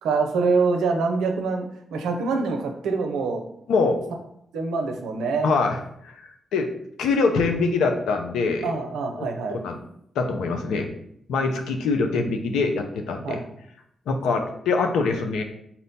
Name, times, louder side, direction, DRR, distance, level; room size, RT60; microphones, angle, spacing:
voice 1, 0.0-3.4 4.5-5.5 8.6-9.6 13.2-13.4, right 4 dB, 85° right, 4 dB, 0.5 m, -25 dB
voice 2, 3.7-4.0 5.4-5.8 6.0-6.2 6.5-6.7 7.0-8.7 9.5-9.8 10.2-10.9 11.3-13.4 14.1-15.4, left 4 dB, 85° left, 4 dB, 0.5 m, -23 dB
4.1 x 2.1 x 4.0 m, 0.72 s
supercardioid pair, 45°, 0 cm